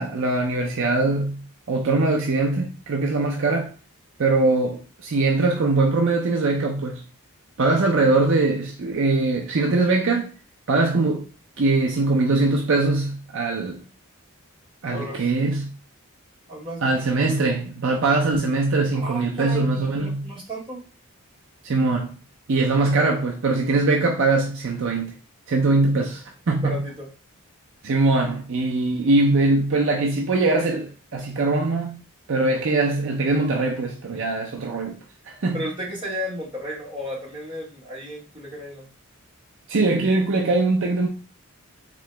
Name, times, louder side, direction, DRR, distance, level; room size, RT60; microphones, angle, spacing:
voice 1, 0.0-3.7 4.2-7.0 7.6-10.3 10.7-11.2 11.6-13.8 14.8-15.7 16.8-20.3 21.6-22.2 22.5-25.1 25.5-26.8 27.8-32.0 32.3-35.0 35.3-35.6 39.7-41.1, right 3 dB, 55° right, 0.5 m, -22 dB
voice 2, 14.9-15.3 16.5-17.0 18.9-20.8 26.5-27.1 35.5-38.9, equal, 20° right, 1.2 m, -34 dB
3.8 x 3.0 x 3.3 m
head